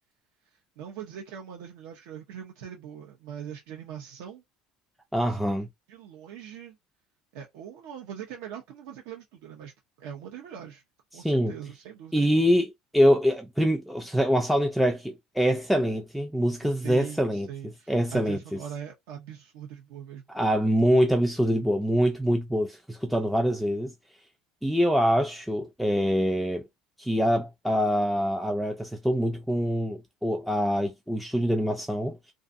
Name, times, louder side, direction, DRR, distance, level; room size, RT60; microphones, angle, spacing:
voice 1, 0.8-4.4 5.3-5.4 5.9-6.8 7.3-9.7 10.0-10.8 11.1-12.4 16.8-20.2, right 9 dB, 75° right, 0.7 m, -41 dB
voice 2, 5.1-5.7 11.1-11.5 12.1-17.5 17.9-18.6 20.3-23.9 24.6-26.6 27.0-32.2, equal, ahead, 0.3 m, -24 dB
2.5 x 2.3 x 2.5 m
cardioid pair, 170°, 0 cm